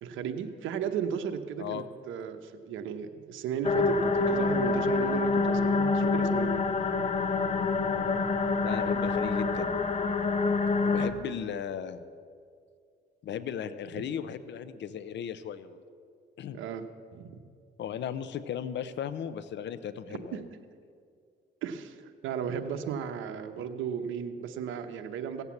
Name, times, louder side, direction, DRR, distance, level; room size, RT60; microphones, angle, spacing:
voice 1, 0.0-6.8 14.0-14.1 16.5-16.9 17.1-17.4 20.3-20.4 21.6-25.4, right 7 dB, 85° right, 7 dB, 0.9 m, -35 dB
sound 1, 3.6-11.1, left 4 dB, 35° left, 1.1 m, -27 dB
voice 2, 8.6-9.7 10.9-12.0 13.2-15.8 16.4-16.6 17.8-20.4, left 8 dB, 65° left, 14 dB, 0.7 m, -36 dB
16.0 x 8.1 x 7.1 m, 2.3 s
cardioid pair, 90°, 20 cm